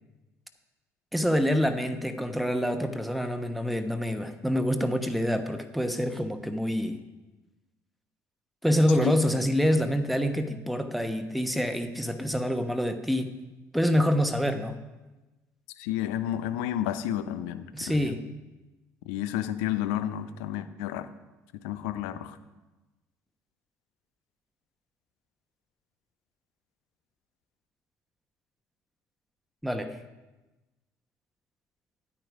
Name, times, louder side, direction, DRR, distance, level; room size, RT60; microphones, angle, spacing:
voice 1, 1.1-7.0 8.6-13.3 13.7-14.8 17.7-18.2 29.6-30.0, equal, ahead, 7 dB, 1.1 m, -26 dB
voice 2, 15.8-18.1 19.1-21.1 21.6-22.4, left 12 dB, 65° left, 11 dB, 0.7 m, -31 dB
11.0 x 9.0 x 4.9 m, 1.1 s
figure-of-eight pair, 55°, 9 cm